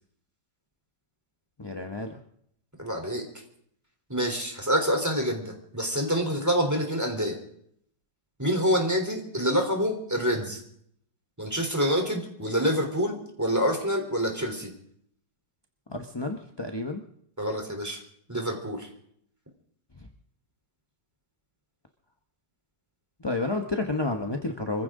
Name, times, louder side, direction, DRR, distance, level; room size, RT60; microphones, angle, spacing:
voice 1, 1.6-2.2 15.9-17.0 20.0-20.1 23.2-24.8, left 2 dB, 20° left, 4 dB, 0.7 m, -30 dB
voice 2, 2.8-3.2 4.1-7.4 8.4-10.6 11.4-14.7 17.4-18.0 18.3-18.9, equal, 10° right, 3 dB, 3.5 m, -27 dB
25.0 x 15.5 x 3.8 m, 0.68 s
omnidirectional pair, 2.0 m